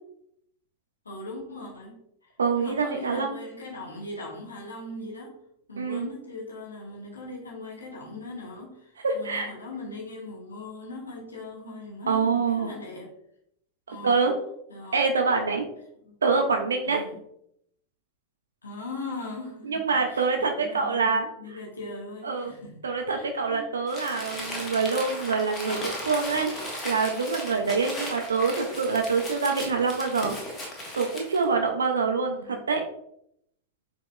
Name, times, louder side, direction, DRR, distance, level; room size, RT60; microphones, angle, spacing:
voice 1, 1.0-5.4 5.7-13.1 13.9-14.3 14.7-15.1 16.0-16.2 16.8-17.2 18.6-22.7 23.1-23.9 32.3-32.7, left 2 dB, 75° left, -1 dB, 0.8 m, -40 dB
voice 2, 2.4-3.3 5.8-6.1 9.0-9.5 12.1-12.7 13.9-14.3 14.9-15.7 16.2-17.0 19.6-21.3 22.2-22.5 22.8-26.5 26.8-30.3 31.0-32.8, right 4 dB, 70° right, 4 dB, 0.4 m, -25 dB
Crumpling crinkling, 23.9-31.5, left 1 dB, 25° left, 1.0 m, -36 dB
4.7 x 2.9 x 2.2 m, 0.74 s
figure-of-eight pair, 90°, 0 cm